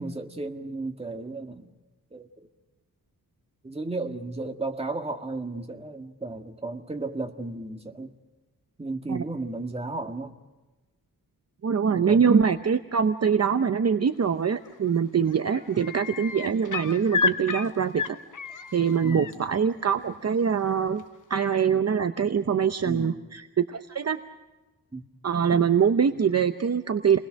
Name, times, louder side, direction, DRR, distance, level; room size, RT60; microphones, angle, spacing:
voice 1, 0.0-1.7 2.1-2.3 3.6-8.1 8.8-10.3 11.9-12.3 19.0-19.3 22.8-23.2 24.9-25.1, right 3 dB, 15° right, 3 dB, 1.8 m, -34 dB
voice 2, 11.6-18.2 18.7-21.0 21.3-24.2 25.2-27.2, right 7 dB, 40° right, 8 dB, 0.8 m, -24 dB
sound 1, 14.6-15.0 15.3-19.3 21.0-21.1, left 5 dB, 55° left, 1.1 m, -31 dB
29.5 x 20.5 x 6.4 m, 1.2 s
wide cardioid pair, 155°, 38 cm